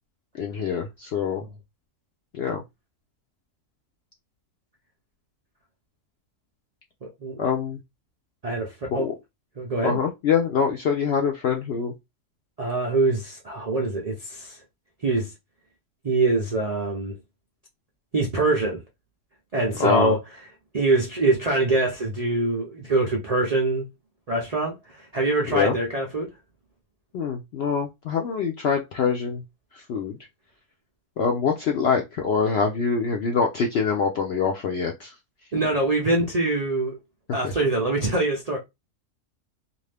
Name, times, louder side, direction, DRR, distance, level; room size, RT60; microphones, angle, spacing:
voice 1, 0.3-1.4 2.3-2.6 7.4-7.8 8.9-9.1 9.8-11.9 19.8-20.1 25.5-25.8 27.1-29.4 29.7-30.2 31.2-35.1, left 6 dB, 75° left, 0.6 m, -24 dB
voice 2, 7.0-7.4 8.4-9.1 9.6-10.0 12.6-14.6 15.0-15.3 16.0-17.2 18.1-18.8 19.5-20.2 20.7-23.9 24.3-26.3 35.5-37.0 37.3-38.6, right 2 dB, 85° right, 0.3 m, -24 dB
2.6 x 2.5 x 3.3 m
omnidirectional pair, 1.6 m